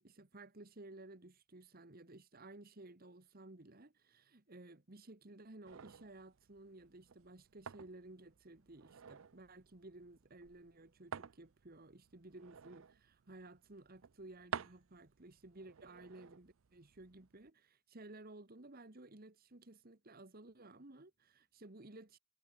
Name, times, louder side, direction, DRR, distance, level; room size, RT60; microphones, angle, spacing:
voice 1, 0.0-22.2, right 2 dB, 40° right, 1.5 m, -56 dB
sound 1, 5.6-17.5, right 7 dB, 60° right, 0.5 m, -52 dB
head